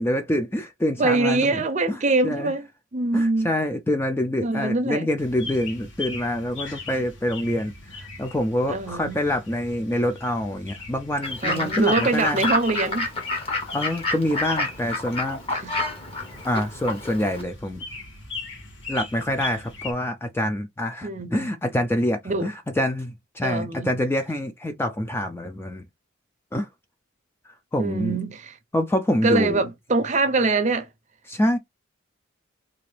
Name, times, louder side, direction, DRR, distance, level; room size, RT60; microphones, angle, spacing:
voice 1, 0.0-2.0 2.2-2.5 3.1-12.5 13.7-15.4 16.4-17.8 18.9-25.8 26.5-26.7 27.7-28.2 28.7-29.6 31.3-31.6, left 1 dB, 10° left, 0.3 m, -26 dB
voice 2, 1.0-3.5 4.4-5.1 8.7-9.2 11.4-13.1 15.5-15.8 21.0-21.5 22.3-22.5 23.4-24.0 27.8-28.6 29.2-30.9, right 3 dB, 35° right, 0.6 m, -24 dB
sound 1, 5.2-19.9, left 3 dB, 65° left, 1.5 m, -39 dB
Fowl / Bird, 11.2-17.4, left 2 dB, 25° left, 1.0 m, -29 dB
3.9 x 2.5 x 3.2 m
head